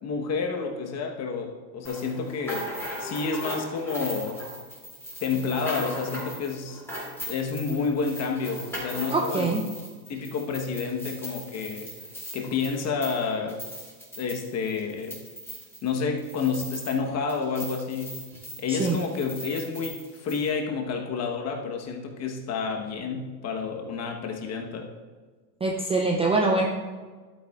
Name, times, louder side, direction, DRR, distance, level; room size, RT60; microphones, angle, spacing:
voice 1, 0.0-2.7 3.0-4.4 5.2-6.8 7.3-9.5 10.1-11.9 12.3-13.7 14.2-15.2 15.8-18.2 18.6-24.9, left 5 dB, 30° left, 3 dB, 1.2 m, -29 dB
sound 1, 1.8-17.0 17.3-20.5, equal, 5° left, 2.8 m, -39 dB
voice 2, 9.1-9.6 18.7-19.0 25.6-26.7, right 3 dB, 15° right, -1 dB, 0.4 m, -24 dB
11.5 x 8.8 x 2.4 m, 1.5 s
supercardioid pair, 125°, 49 cm